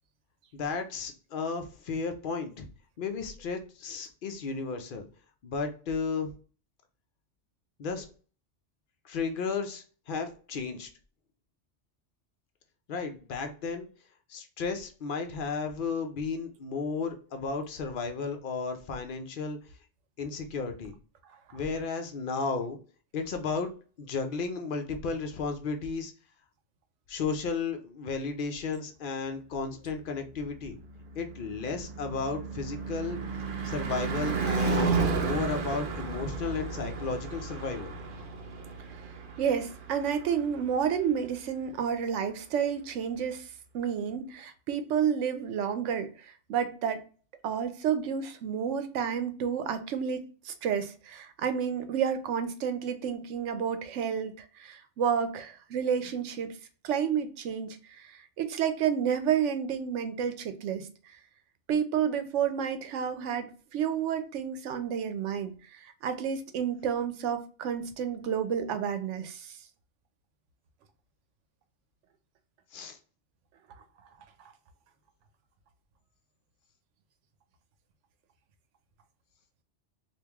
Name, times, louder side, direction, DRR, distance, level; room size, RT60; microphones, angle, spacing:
voice 1, 0.5-2.7 3.0-5.1 5.4-6.3 7.8-8.1 9.0-10.9 12.9-13.9 14.3-19.6 20.2-20.9 21.5-22.8 23.1-23.7 24.0-26.1 27.1-30.8 31.2-33.2 33.6-37.9 72.7-73.0, left 4 dB, 55° left, 0.7 m, -33 dB
Car passing by / Truck / Engine, 30.6-40.9, right 4 dB, 55° right, 0.7 m, -33 dB
voice 2, 39.4-47.0 47.4-56.5 56.8-60.9 61.7-69.6, right 8 dB, 80° right, 0.9 m, -30 dB
2.9 x 2.5 x 3.4 m
omnidirectional pair, 1.2 m